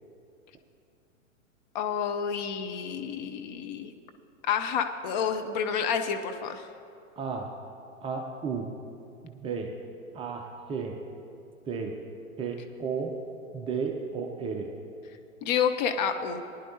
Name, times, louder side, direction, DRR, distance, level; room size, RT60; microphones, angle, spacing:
voice 1, 1.7-3.9 4.5-6.7 15.4-16.4, left 7 dB, 35° left, 7 dB, 0.6 m, -29 dB
voice 2, 7.2-7.5 8.0-8.7 9.2-9.7 10.1-11.0 11.7-12.0 12.4-13.1 13.5-14.7, right 5 dB, 15° right, 2 dB, 0.5 m, -33 dB
19.5 x 10.5 x 2.8 m, 2.5 s
figure-of-eight pair, 105°, 40 cm